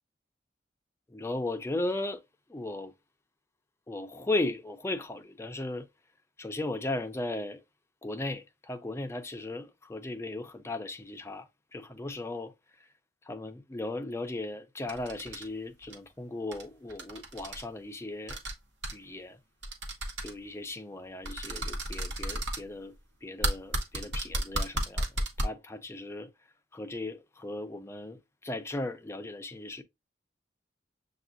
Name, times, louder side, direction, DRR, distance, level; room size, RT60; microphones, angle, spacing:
voice 1, 1.1-2.2 2.5-2.9 3.9-5.9 6.4-7.6 8.0-12.5 13.2-18.4 18.9-19.4 20.2-23.0 23.2-26.3 26.7-29.8, left 2 dB, 15° left, 0.5 m, -36 dB
sound 1, 14.9-15.4 15.8-16.0 16.5-16.6 16.9-17.6 18.3-18.5 18.8-18.9 19.6-20.3 21.3-22.6 23.4-25.4, right 1 dB, 90° right, 1.0 m, -32 dB
6.9 x 2.4 x 2.4 m
head